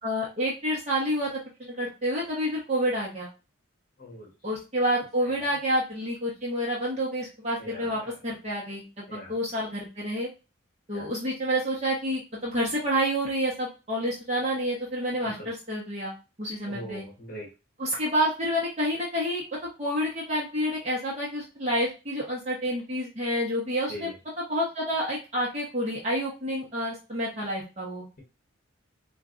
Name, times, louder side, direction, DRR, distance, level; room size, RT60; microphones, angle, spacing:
voice 1, 0.0-3.3 4.4-10.3 10.9-16.1 16.4-17.0 17.8-19.4 19.8-24.1 24.5-28.0, equal, 35° right, -5 dB, 1.0 m, -29 dB
voice 2, 4.0-4.3 7.6-8.1 9.1-9.4 10.9-11.1 15.2-15.5 16.7-17.5 23.9-24.1, equal, 45° left, -1 dB, 1.2 m, -41 dB
4.4 x 2.5 x 2.5 m, 0.30 s
head